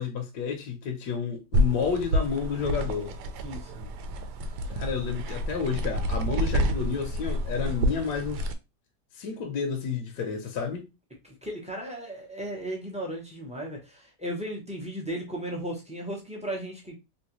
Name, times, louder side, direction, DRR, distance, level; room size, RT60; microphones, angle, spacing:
voice 1, 0.0-3.1 4.7-8.5 9.1-10.9, left 6 dB, 75° left, 1.2 m, -30 dB
sound 1, 1.5-8.5, equal, 75° right, 1.1 m, -29 dB
voice 2, 3.4-3.9 11.2-17.0, right 1 dB, 10° right, 0.4 m, -36 dB
3.2 x 2.9 x 2.9 m
omnidirectional pair, 1.8 m